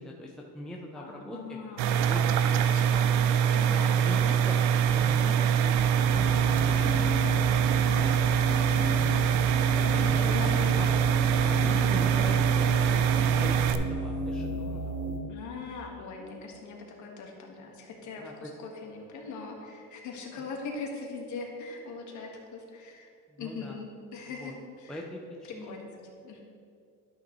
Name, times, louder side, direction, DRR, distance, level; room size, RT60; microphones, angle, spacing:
voice 1, 0.0-1.6 2.0-2.8 3.7-4.6 4.8-8.8 9.7-11.1 11.5-14.9 18.2-18.5 23.3-23.8 24.4-24.5 24.9-25.8, left 1 dB, ahead, -1 dB, 0.5 m, -42 dB
voice 2, 0.9-2.1 2.6-3.1 3.5-4.0 6.8-7.1 9.9-10.9 11.6-11.9 15.3-23.1 23.4-25.0 25.6-25.9 26.2-26.4, left 4 dB, 50° left, 1 dB, 1.6 m, -41 dB
sound 1, 1.8-13.7, right 8 dB, 85° right, 0.6 m, -24 dB
sound 2, 6.0-15.2, right 1 dB, 55° right, 1.4 m, -33 dB
11.5 x 6.3 x 3.1 m, 2.4 s
supercardioid pair, 115°, 37 cm